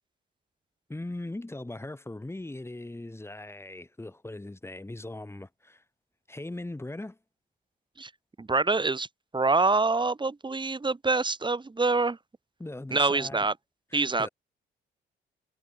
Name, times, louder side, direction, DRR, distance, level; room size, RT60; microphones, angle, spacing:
voice 1, 0.9-5.8 6.3-7.2 12.6-13.4 13.9-14.3, left 2 dB, 10° left, 7.9 m, -39 dB
voice 2, 8.4-9.1 9.3-12.2 12.9-13.5 13.9-14.3, right 3 dB, 25° right, 6.2 m, -25 dB
cardioid pair, 90°, 20 cm